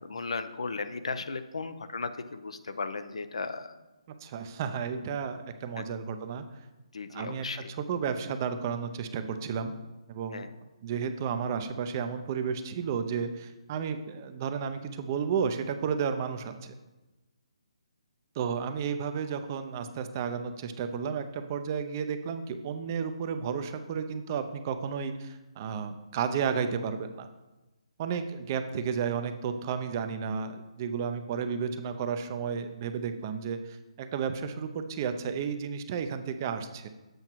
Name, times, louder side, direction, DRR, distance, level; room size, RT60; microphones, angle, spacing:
voice 1, 0.0-3.8 5.8-5.9 6.9-7.7 10.3-10.5, left 4 dB, 70° left, 10 dB, 0.7 m, -36 dB
voice 2, 4.2-6.5 7.1-9.7 10.1-10.5 10.8-16.7 18.4-27.3 28.0-36.9, right 6 dB, 30° right, 8 dB, 0.6 m, -32 dB
7.9 x 5.6 x 4.5 m, 1.1 s
figure-of-eight pair, 150°, 3 cm